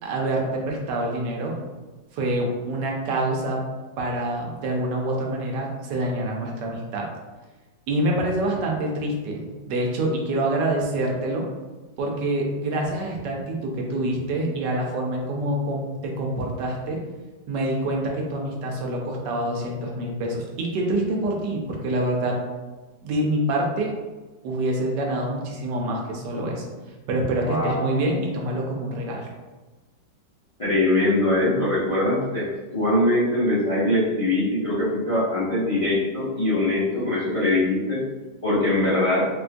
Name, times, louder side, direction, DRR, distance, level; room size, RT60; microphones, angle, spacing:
voice 1, 0.0-1.5 2.1-3.6 4.0-7.1 7.9-11.5 12.0-17.0 17.5-22.4 23.0-23.9 24.4-26.7 27.1-29.3, right 1 dB, 75° right, 0 dB, 1.2 m, -26 dB
voice 2, 27.4-27.9 30.6-32.5 32.7-38.0 38.4-39.3, left 1 dB, 60° left, -10 dB, 0.3 m, -22 dB
4.3 x 2.3 x 2.5 m, 1.2 s
omnidirectional pair, 2.0 m